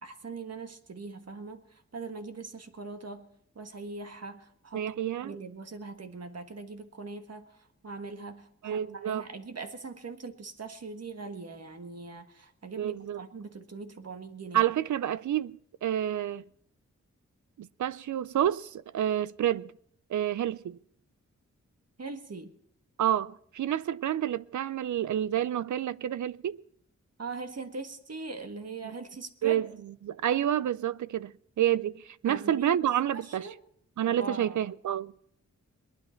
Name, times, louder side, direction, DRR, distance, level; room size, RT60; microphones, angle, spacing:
voice 1, 0.0-3.3 3.5-4.8 5.2-14.6 22.0-22.5 27.2-29.7 32.2-32.8 33.1-33.6 34.0-34.7, right 4 dB, 55° right, 1.6 m, -41 dB
voice 2, 4.7-5.3 8.6-9.2 12.8-13.2 14.5-16.4 17.6-19.7 20.1-20.8 23.0-26.6 28.8-28.9 29.4-29.7 30.0-31.3 31.6-33.5 34.0-35.1, right 11 dB, 75° right, 0.5 m, -29 dB
22.0 x 9.8 x 4.4 m
cardioid pair, 55°, 30 cm